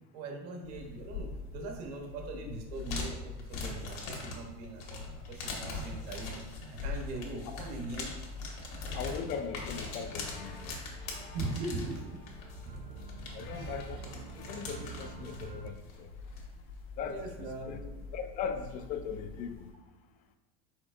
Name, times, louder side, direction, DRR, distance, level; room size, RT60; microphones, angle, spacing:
voice 1, 0.1-8.1 11.3-12.1 13.5-14.0 17.0-18.0, right 2 dB, 75° right, 2 dB, 0.8 m, -41 dB
sound 1, 0.6-19.7, left 3 dB, 80° left, 1.2 m, -42 dB
voice 2, 8.9-10.7 13.3-16.1 17.0-17.8 18.1-19.7, left 6 dB, 45° left, 8 dB, 0.4 m, -39 dB
sound 2, 9.1-15.3, left 4 dB, 60° left, 0.8 m, -55 dB
sound 3, 10.7-15.7, right 7 dB, 45° right, 0.4 m, -47 dB
4.5 x 4.2 x 2.4 m, 1.1 s
supercardioid pair, 125°, 20 cm